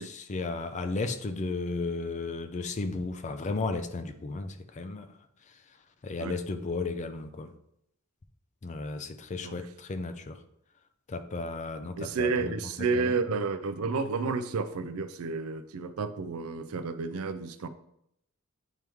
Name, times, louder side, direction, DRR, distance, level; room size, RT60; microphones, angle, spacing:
voice 1, 0.0-5.1 5.5-5.8 6.0-7.5 8.6-10.4 11.1-13.1, left 3 dB, 35° left, 9 dB, 0.4 m, -34 dB
voice 2, 12.0-17.7, right 4 dB, 75° right, 10 dB, 0.5 m, -31 dB
9.1 x 3.1 x 3.5 m, 0.77 s
head